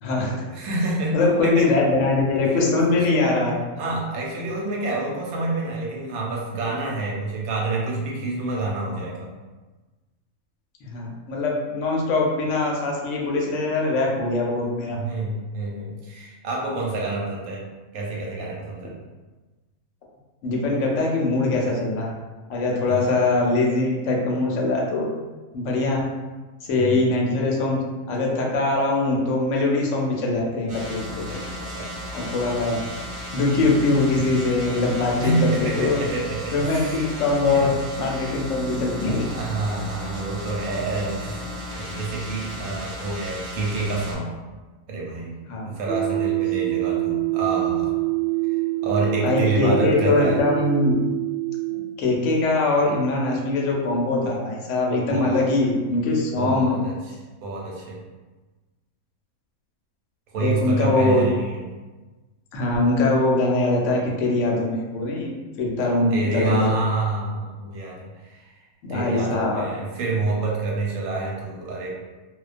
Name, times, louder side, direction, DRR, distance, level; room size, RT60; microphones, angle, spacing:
voice 1, 0.0-0.5 1.1-3.5 10.8-15.0 20.4-22.1 22.5-25.1 25.5-26.0 26.6-27.8 28.1-31.4 32.1-35.5 35.8-36.0 36.5-37.7 38.0-39.3 45.5-45.7 49.2-50.9 51.7-56.7 60.4-61.3 62.5-65.3 65.6-66.7 68.8-69.6, left 2 dB, 70° left, -2 dB, 0.9 m, -22 dB
voice 2, 0.5-1.7 2.4-2.6 2.9-3.0 3.8-9.3 14.9-17.6 17.9-18.9 22.9-23.1 26.8-27.0 31.6-31.9 35.2-37.1 37.5-37.6 38.2-38.3 39.3-44.4 44.9-45.3 45.6-47.9 48.8-50.4 55.1-55.5 56.4-57.1 57.4-58.0 60.3-61.7 66.1-68.6 68.9-71.9, right 2 dB, 90° right, -3 dB, 1.1 m, -27 dB
sound 1, 30.7-44.2, equal, 50° right, 0.8 m, -35 dB
sound 2, 45.9-51.9, right 22 dB, 65° right, 0.5 m, -25 dB
2.3 x 2.2 x 2.4 m, 1.2 s
omnidirectional pair, 1.5 m